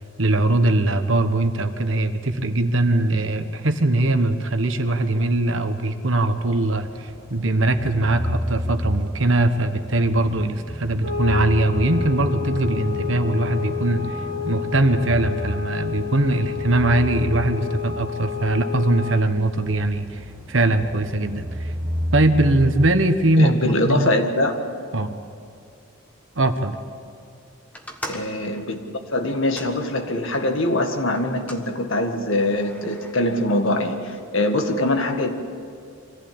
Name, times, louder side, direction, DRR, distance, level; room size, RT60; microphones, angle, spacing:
voice 1, 0.2-21.7 22.1-24.1 24.9-25.1 26.3-26.8, right 2 dB, 65° right, 8 dB, 1.3 m, -21 dB
sound 1, 6.5-22.9, equal, 15° right, 1.7 m, -32 dB
sound 2, 11.0-19.4, left 10 dB, 50° right, 2.2 m, -30 dB
voice 2, 23.4-24.6 28.1-35.3, left 1 dB, 65° left, 5 dB, 1.8 m, -23 dB
sound 3, 27.7-30.5 31.1-31.7 32.5-33.1, equal, 5° left, 1.4 m, -39 dB
24.5 x 15.0 x 8.7 m, 2.3 s
head